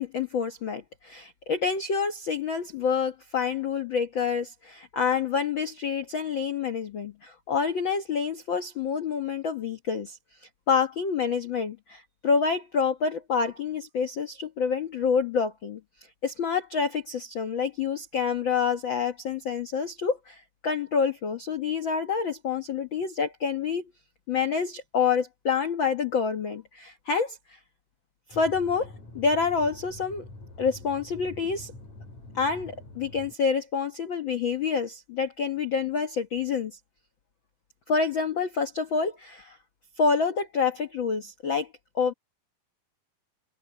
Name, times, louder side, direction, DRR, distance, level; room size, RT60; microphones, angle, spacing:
voice 1, 0.0-10.2 10.7-15.8 16.2-23.9 24.3-27.6 28.3-30.2 30.6-31.7 32.3-36.8 37.9-39.6 40.0-41.7 41.9-42.1, left 5 dB, 85° left, 1.0 m, -27 dB
sound 1, 28.3-33.3, left 2 dB, 50° left, 9.2 m, -45 dB
omnidirectional pair, 4.3 m